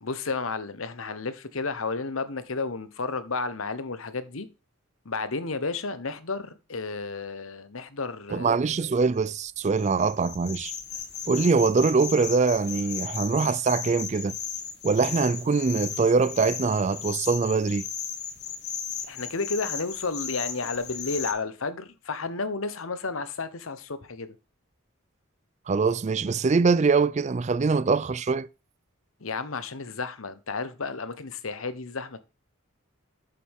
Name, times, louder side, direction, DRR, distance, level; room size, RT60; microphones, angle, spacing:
voice 1, 0.0-4.5 5.0-8.7 19.0-24.3 29.2-32.2, left 4 dB, 80° left, 1.1 m, -32 dB
voice 2, 8.3-10.7 11.3-14.3 14.8-17.9 25.7-28.5, right 4 dB, 35° right, 0.4 m, -23 dB
sound 1, 9.1-21.3, left 7 dB, 50° left, 2.0 m, -36 dB
8.3 x 7.3 x 3.6 m
head